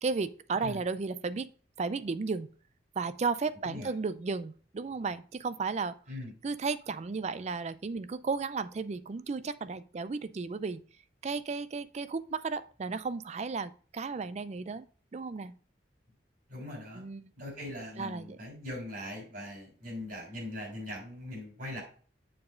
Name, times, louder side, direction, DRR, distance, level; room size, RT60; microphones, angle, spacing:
voice 1, 0.0-1.5 1.8-2.5 3.0-6.0 6.4-10.8 11.2-14.9 15.1-15.5 17.0-17.3 18.0-18.4, right 4 dB, 40° right, 14 dB, 0.4 m, -34 dB
voice 2, 16.5-17.0 17.4-21.8, left 1 dB, 55° right, -1 dB, 3.6 m, -41 dB
7.5 x 4.6 x 3.7 m, 0.42 s
head